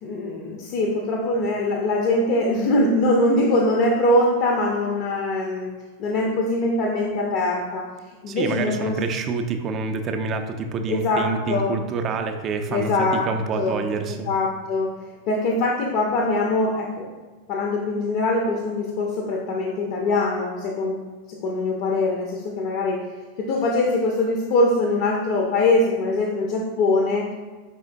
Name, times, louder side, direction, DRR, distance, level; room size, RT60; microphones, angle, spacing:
voice 1, 0.0-5.7 6.0-7.9 8.2-9.0 10.9-11.7 12.7-13.3 13.6-13.8 14.2-14.9 15.3-17.1 17.5-21.0 21.3-23.0 23.4-27.4, left 2 dB, 45° left, 0 dB, 0.5 m, -22 dB
voice 2, 8.3-14.3, right 4 dB, 30° right, 6 dB, 0.4 m, -27 dB
4.8 x 3.5 x 2.5 m, 1.3 s
figure-of-eight pair, 90°, 0 cm